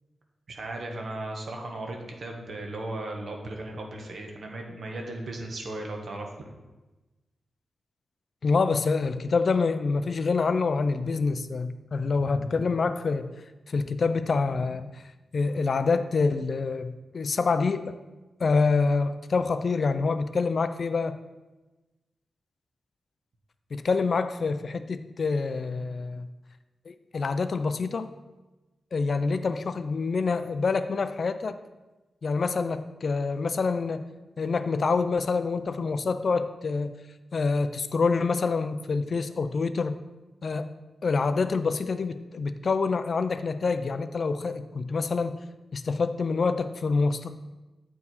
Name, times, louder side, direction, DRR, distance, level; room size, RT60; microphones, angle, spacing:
voice 1, 0.5-6.3, right 2 dB, 55° right, 2 dB, 1.1 m, -36 dB
voice 2, 8.4-13.3 13.7-15.0 15.3-17.9 18.4-21.2 23.7-26.3 26.9-28.1 28.9-31.6 32.2-34.0 34.4-36.9 37.3-39.9 40.4-40.7 41.0-45.4 45.7-47.4, left 4 dB, 50° left, 10 dB, 0.4 m, -26 dB
8.4 x 4.6 x 4.2 m, 1.1 s
wide cardioid pair, 145°, 0 cm